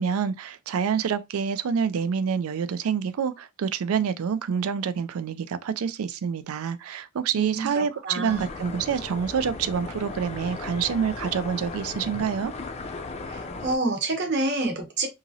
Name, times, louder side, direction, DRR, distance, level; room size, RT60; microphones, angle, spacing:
voice 1, 0.0-12.5, right 7 dB, 85° right, 0.4 m, -27 dB
voice 2, 7.3-8.4 13.3-15.1, right 2 dB, 55° right, 0.9 m, -28 dB
sound 1, 8.3-13.8, left 3 dB, 30° left, 0.4 m, -36 dB
2.9 x 2.5 x 2.6 m
head